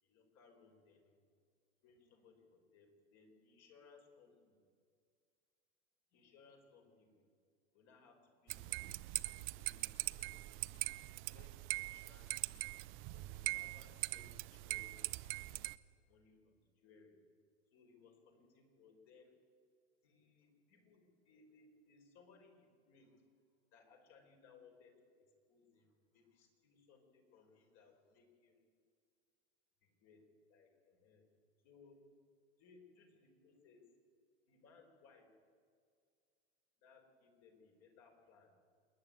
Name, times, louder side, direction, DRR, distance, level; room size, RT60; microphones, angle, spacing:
voice 1, 0.0-1.3 1.8-4.6 6.1-7.2 7.7-9.0 9.5-10.7 11.2-12.7 13.1-15.5 16.1-17.2 17.7-19.3 20.0-23.2 23.7-28.6 29.8-31.3 31.6-32.0 32.6-33.9 34.5-35.3 36.8-38.6, left 4 dB, 45° left, 3 dB, 5.1 m, -65 dB
sound 1, 8.5-15.8, right 21 dB, 35° right, 0.7 m, -42 dB
27.0 x 11.0 x 9.2 m, 2.1 s
hypercardioid pair, 120°, 36 cm